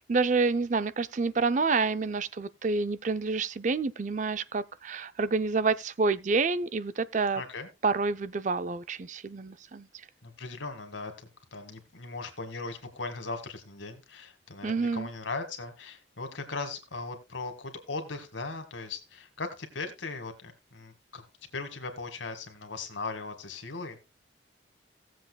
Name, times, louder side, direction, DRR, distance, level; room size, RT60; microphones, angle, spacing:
voice 1, 0.0-7.4 7.8-9.9 14.6-15.1, right 4 dB, 40° right, 0.4 m, -28 dB
voice 2, 7.4-7.7 10.2-21.2 21.5-24.0, left 3 dB, 80° left, 2.0 m, -38 dB
17.5 x 7.6 x 2.3 m
head